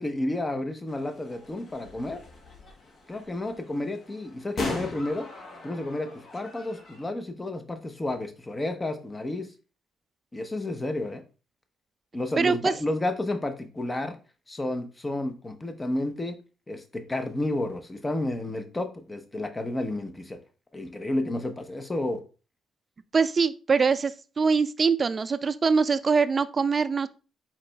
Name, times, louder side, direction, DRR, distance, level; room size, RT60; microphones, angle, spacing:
voice 1, 0.0-2.2 3.1-5.3 5.6-9.5 10.3-11.2 12.1-14.2 14.5-16.3 16.7-20.4 20.7-22.2, left 1 dB, 20° left, 0.8 m, -31 dB
sound 1, 0.9-7.1, left 2 dB, 50° left, 1.1 m, -39 dB
voice 2, 12.4-12.7 23.1-27.1, right 5 dB, 35° right, 0.3 m, -23 dB
4.8 x 4.3 x 2.3 m
cardioid pair, 90°, 0 cm